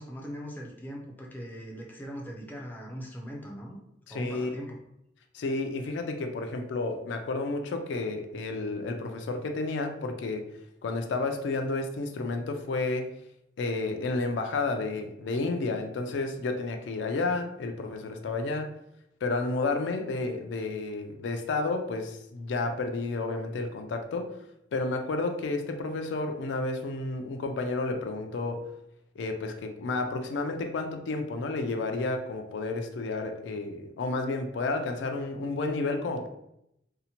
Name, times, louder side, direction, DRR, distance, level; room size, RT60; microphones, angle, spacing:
voice 1, 0.0-3.8 4.1-4.8, equal, 10° left, -1 dB, 0.4 m, -40 dB
voice 2, 4.1-4.6 5.3-13.1 13.6-18.7 19.2-24.4 24.7-28.7 29.2-36.3, left 3 dB, 85° left, 5 dB, 0.4 m, -31 dB
2.7 x 2.1 x 2.8 m, 0.80 s
head